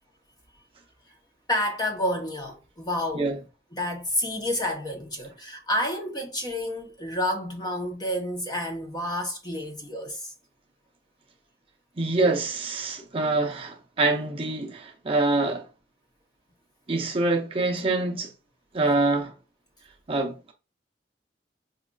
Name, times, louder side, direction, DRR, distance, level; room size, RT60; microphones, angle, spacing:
voice 1, 1.5-3.3 3.7-10.3, left 1 dB, 20° left, 0.7 m, -29 dB
voice 2, 12.0-15.6 16.9-18.3 18.7-19.3 20.1-20.5, right 2 dB, 30° right, 0.5 m, -25 dB
5.0 x 2.4 x 2.3 m
head